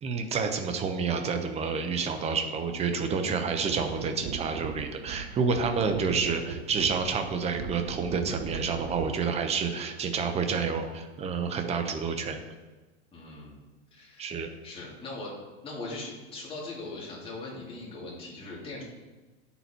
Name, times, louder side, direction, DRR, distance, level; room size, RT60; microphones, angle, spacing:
voice 1, 0.0-12.4 14.2-14.5, right 5 dB, 20° right, 6 dB, 0.9 m, -29 dB
sound 1, 3.7-9.3 10.1-10.3, right 7 dB, 50° right, 0.8 m, -39 dB
voice 2, 13.1-13.6 13.9-14.3 14.6-15.3 15.6-18.8, left 2 dB, 15° left, -5 dB, 2.9 m, -40 dB
9.6 x 7.1 x 4.5 m, 1.2 s
supercardioid pair, 150°, 32 cm